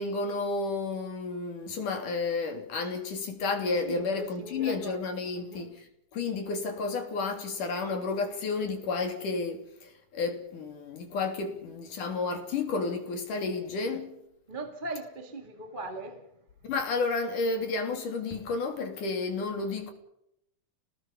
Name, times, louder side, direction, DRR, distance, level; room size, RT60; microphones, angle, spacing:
voice 1, 0.0-14.2 16.7-19.9, left 4 dB, 65° left, 4.5 m, -31 dB
voice 2, 3.8-5.0 5.3-5.7 14.5-16.3, right 2 dB, 20° right, 1.8 m, -39 dB
29.0 x 20.0 x 5.5 m
omnidirectional pair, 4.0 m